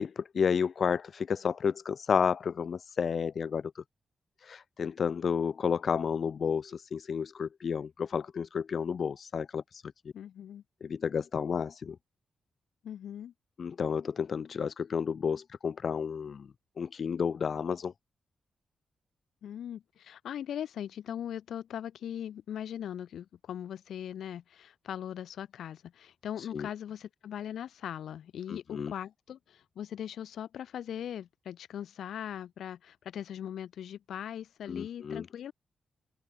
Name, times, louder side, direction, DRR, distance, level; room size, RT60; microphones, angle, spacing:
voice 1, 0.0-3.8 4.4-9.9 10.8-12.0 13.6-16.5 16.8-17.9 26.4-26.7 28.5-28.9 34.7-35.3, left 6 dB, 60° left, 0.5 m, -31 dB
voice 2, 10.1-10.6 12.8-13.3 19.4-35.5, left 10 dB, 85° left, 3.1 m, -40 dB
open air
cardioid pair, 75°, 0 cm